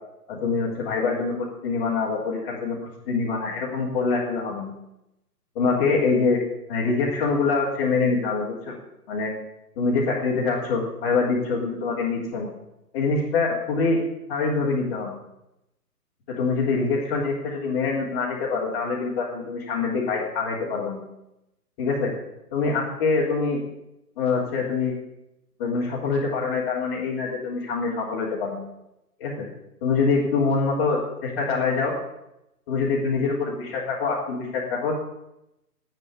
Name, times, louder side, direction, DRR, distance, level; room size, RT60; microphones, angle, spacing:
voice 1, 0.3-2.8 3.1-4.7 5.6-6.4 6.7-8.8 9.1-9.3 9.8-12.5 12.9-14.0 14.3-15.2 16.4-21.0 21.8-22.1 22.5-23.6 24.2-24.9 25.6-28.7 29.2-29.5 29.8-31.9 32.7-35.0, left 4 dB, 25° left, -8 dB, 3.5 m, -25 dB
12.5 x 9.3 x 9.8 m, 0.88 s
figure-of-eight pair, 150°, 49 cm